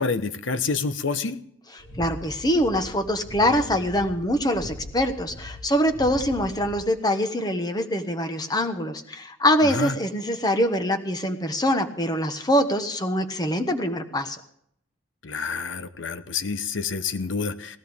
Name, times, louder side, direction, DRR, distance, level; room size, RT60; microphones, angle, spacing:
voice 1, 0.0-1.4 9.7-9.9 15.2-17.8, left 4 dB, 65° left, 11 dB, 0.8 m, -28 dB
voice 2, 1.7-14.4, equal, 20° left, 8 dB, 1.1 m, -24 dB
sound 1, 1.8-6.8, left 1 dB, 90° left, 2.3 m, -40 dB
18.5 x 15.0 x 3.6 m, 0.70 s
head